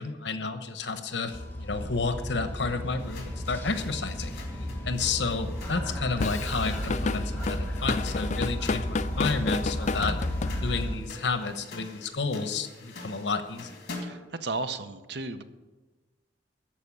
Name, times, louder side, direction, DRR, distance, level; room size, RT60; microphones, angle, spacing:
voice 1, 0.0-4.4 4.8-10.2 10.6-13.8, left 4 dB, 80° left, 9 dB, 1.1 m, -31 dB
sound 1, 1.3-11.0, equal, 10° left, 1.7 m, -34 dB
sound 2, 3.0-14.3, left 3 dB, 60° left, 2.5 m, -46 dB
Drum kit / Drum, 6.2-11.0, left 4 dB, 40° left, 0.4 m, -31 dB
voice 2, 14.0-15.4, right 3 dB, 65° right, 11 dB, 0.8 m, -34 dB
13.5 x 5.0 x 8.6 m, 1.2 s
head